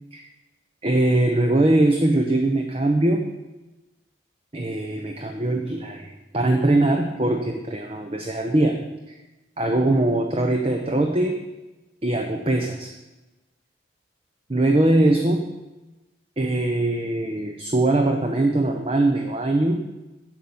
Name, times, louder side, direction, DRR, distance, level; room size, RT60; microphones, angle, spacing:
voice 1, 0.8-3.2 4.5-8.8 9.1-9.2 9.6-11.4 12.0-12.9 14.5-15.4 16.4-19.8, right 2 dB, 30° right, 4 dB, 0.8 m, -21 dB
11.0 x 7.9 x 7.2 m, 1.1 s
head